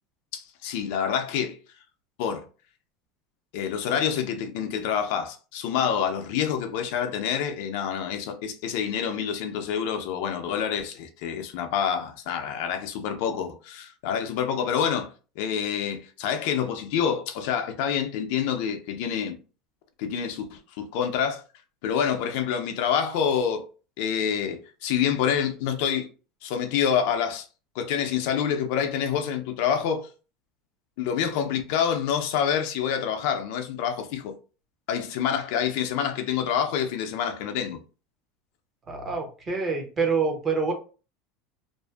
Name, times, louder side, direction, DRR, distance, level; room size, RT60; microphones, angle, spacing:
voice 1, 0.3-1.6 2.2-2.4 3.5-15.1 15.4-19.4 20.0-21.4 21.8-23.7 24.0-26.1 26.4-27.4 27.8-30.1 31.0-34.4 34.9-37.8, left 8 dB, 65° left, 0.4 m, -27 dB
voice 2, 38.9-40.7, right 5 dB, 25° right, 0.7 m, -26 dB
2.5 x 2.4 x 2.3 m
supercardioid pair, 150°, 0 cm